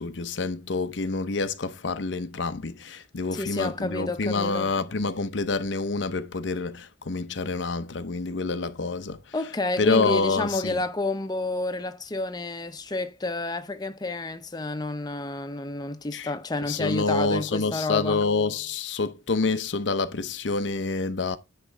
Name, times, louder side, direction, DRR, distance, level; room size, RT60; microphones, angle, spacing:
voice 1, 0.0-9.3 9.8-10.8 16.1-16.3 16.6-21.4, left 3 dB, 90° left, 0.8 m, -27 dB
voice 2, 3.4-4.7 9.3-18.2, left 2 dB, 20° left, 0.7 m, -30 dB
9.8 x 3.3 x 5.9 m
head